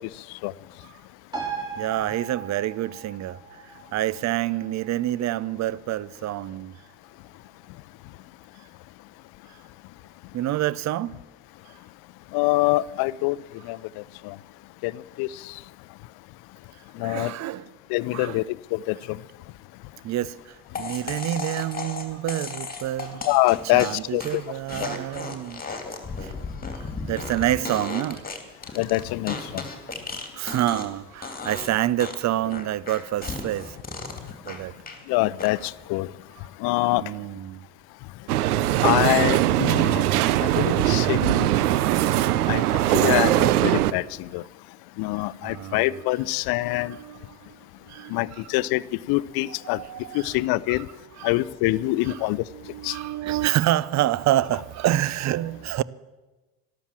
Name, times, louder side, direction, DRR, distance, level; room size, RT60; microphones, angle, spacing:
sound 1, 1.3-8.3 8.6-8.7, right 5 dB, 10° right, 4.4 m, -40 dB
voice 1, 1.8-3.4 3.9-6.7 10.3-11.2 17.0-17.7 18.1-18.4 20.0-23.2 23.7-25.6 26.2-26.3 26.7-28.2 30.4-33.8 34.5-34.7 37.0-37.7 45.4-45.9 46.7-47.2 47.9-48.2 49.7-50.4 51.2-51.3 51.8-52.2 52.5-55.8, right 13 dB, 40° right, 0.6 m, -27 dB
voice 2, 12.3-13.4 13.7-13.8 14.2-14.3 14.8-14.9 15.2-15.3 17.0-17.3 17.9-18.4 18.7-19.2 23.3-24.4 28.8-29.6 35.1-36.1 36.6-37.0 38.8-40.0 40.4-41.5 42.5-42.6 42.9-44.4 45.0-47.0 48.1-48.8 49.1-49.8 50.1-50.9 51.2-52.4 52.8-52.9, left 19 dB, 55° left, 0.6 m, -24 dB
sound 2, 20.7-31.0 31.2-31.7 32.0-35.0 35.4-35.8, left 4 dB, 20° left, 2.6 m, -35 dB
sound 3, 38.3-43.9, right 14 dB, 80° right, 0.7 m, -21 dB
12.5 x 12.5 x 7.4 m
hypercardioid pair, 70°, 44 cm